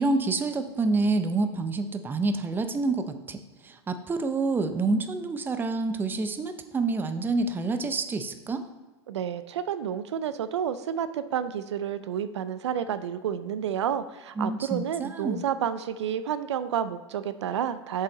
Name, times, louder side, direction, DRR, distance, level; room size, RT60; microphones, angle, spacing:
voice 1, 0.0-8.7 14.4-15.4, right 3 dB, 15° right, 8 dB, 0.6 m, -28 dB
voice 2, 9.1-18.0, right 9 dB, 80° right, 13 dB, 0.4 m, -30 dB
7.0 x 5.5 x 4.0 m, 1.3 s
hypercardioid pair, 110°, 14 cm